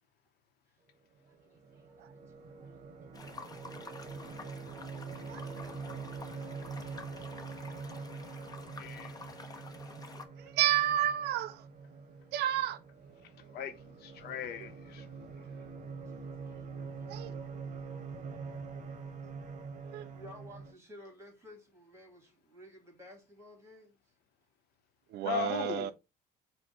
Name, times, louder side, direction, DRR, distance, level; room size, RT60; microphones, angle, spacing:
voice 1, 1.2-2.1 2.4-2.8 14.1-14.2 16.1-17.6 18.3-18.7 20.1-24.0 25.7-25.9, left 1 dB, 15° right, 2.2 m, -56 dB
sound 1, 1.2-20.7, right 5 dB, 45° right, 0.9 m, -45 dB
sound 2, 3.1-10.2, left 4 dB, 20° left, 0.7 m, -49 dB
voice 2, 8.8-9.1 13.5-13.7 14.0-15.0 25.2-25.9, left 7 dB, 75° left, 0.7 m, -38 dB
voice 3, 10.5-11.6 12.3-12.8 17.1-17.3 19.9-20.0 25.1-25.9, right 12 dB, 75° right, 0.4 m, -30 dB
5.0 x 2.1 x 4.4 m
cardioid pair, 110°, 17 cm